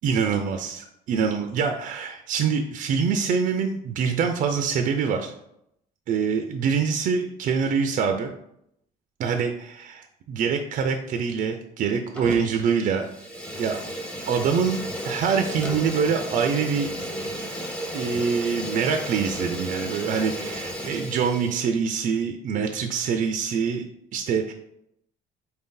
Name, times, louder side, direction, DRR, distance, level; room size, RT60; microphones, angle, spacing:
voice 1, 0.0-5.3 6.1-8.3 9.2-13.1 13.6-13.8 14.3-16.9 17.9-23.9 24.1-24.5, right 6 dB, 55° right, 5 dB, 0.4 m, -25 dB
Fire, 12.1-12.7 13.0-21.7, equal, 5° left, 0.7 m, -33 dB
4.0 x 2.6 x 3.7 m, 0.77 s
cardioid pair, 110°, 17 cm